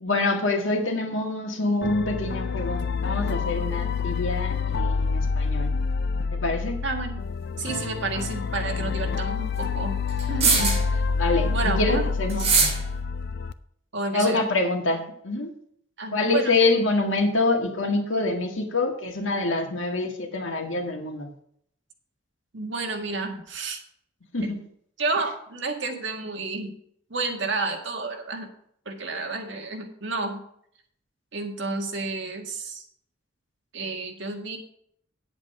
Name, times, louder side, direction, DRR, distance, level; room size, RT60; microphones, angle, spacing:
voice 1, 0.0-5.7 6.3-6.8 11.2-12.5 14.1-15.5 16.1-21.3 24.3-24.6, left 2 dB, 85° left, 3 dB, 1.9 m, -26 dB
sound 1, 1.8-13.5, left 5 dB, 60° left, 0.5 m, -27 dB
voice 2, 6.8-7.2 7.6-10.0 10.3-11.0 11.5-12.1 12.4-12.5 13.9-14.5 16.0-16.6 22.5-23.8 24.4-24.5 25.0-26.7 27.1-28.5 28.9-30.4 31.3-32.8 33.7-34.6, right 3 dB, 65° right, 3 dB, 1.9 m, -30 dB
sound 2, 8.2-8.3 10.2-10.9 12.3-12.8, right 4 dB, 35° right, 2.9 m, -21 dB
9.6 x 8.1 x 4.9 m, 0.67 s
head